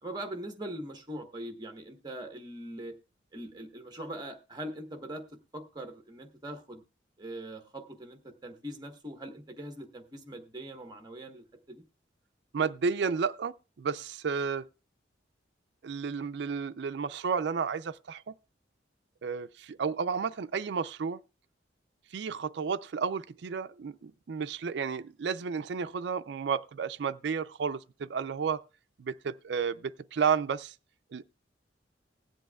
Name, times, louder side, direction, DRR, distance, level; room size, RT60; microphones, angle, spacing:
voice 1, 0.0-2.9 3.3-5.2 5.5-6.8 7.2-11.8, right 1 dB, 20° right, 1.1 m, -42 dB
voice 2, 12.5-14.7 15.8-18.3 19.2-21.2 22.1-28.6 29.0-30.7 31.1-31.2, right 6 dB, 65° right, 0.4 m, -32 dB
20.5 x 7.8 x 2.3 m
head